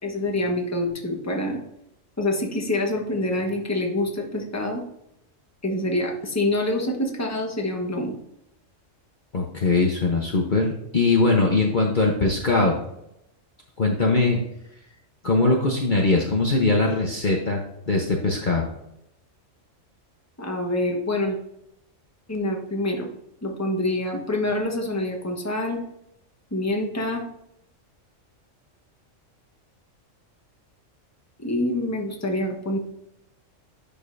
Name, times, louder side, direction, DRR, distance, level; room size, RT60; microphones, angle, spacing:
voice 1, 0.0-1.6 2.2-4.8 5.6-8.1 20.4-21.4 22.3-23.1 23.4-25.8 26.5-27.3 31.4-32.8, left 1 dB, 15° left, 1 dB, 1.2 m, -26 dB
voice 2, 9.3-12.7 13.8-14.4 15.2-18.7, left 3 dB, 40° left, 0 dB, 1.0 m, -21 dB
11.0 x 5.3 x 2.6 m, 0.80 s
omnidirectional pair, 1.3 m